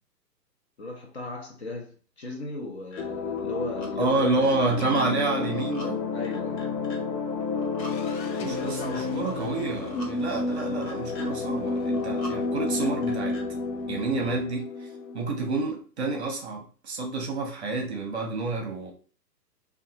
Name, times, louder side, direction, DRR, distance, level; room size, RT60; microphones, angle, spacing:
voice 1, 0.8-4.7 6.1-6.7 8.5-9.2, left 2 dB, 45° left, 0.6 m, -36 dB
sound 1, 2.9-3.0 3.4-3.9 4.3-5.1 5.4-5.9 6.2-7.0 7.4-7.9 8.3-9.0 9.5-10.1 10.5-11.3 11.8-12.4 12.7-13.4, left 1 dB, 60° left, 1.3 m, -44 dB
sound 2, 3.0-15.5, left 4 dB, 85° left, 0.6 m, -31 dB
voice 2, 4.0-6.0 8.4-13.4 13.9-14.7 15.1-18.9, right 3 dB, 40° right, 0.7 m, -29 dB
2.7 x 2.3 x 2.7 m
figure-of-eight pair, 130°, 50 cm